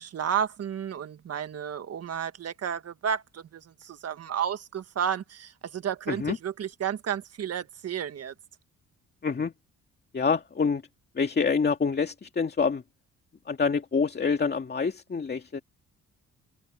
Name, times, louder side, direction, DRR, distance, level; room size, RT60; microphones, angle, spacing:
voice 1, 0.0-8.3, right 8 dB, 55° right, 1.6 m, -32 dB
voice 2, 9.2-9.5 10.1-10.8 11.2-12.8 13.5-15.6, left 5 dB, 35° left, 2.4 m, -26 dB
cardioid pair, 90°, 30 cm